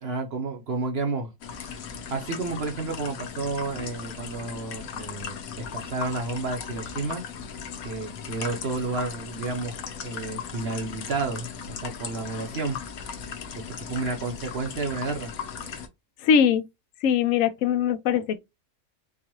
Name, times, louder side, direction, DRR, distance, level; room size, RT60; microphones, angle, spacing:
voice 1, 0.0-1.3 1.6-7.2 7.8-12.8 13.8-15.3, right 3 dB, 50° right, 0.9 m, -31 dB
sound 1, 1.4-15.9, left 6 dB, 90° left, 1.2 m, -37 dB
voice 2, 16.2-16.6 17.0-18.4, left 8 dB, 70° left, 0.9 m, -21 dB
4.6 x 2.4 x 2.9 m
omnidirectional pair, 1.5 m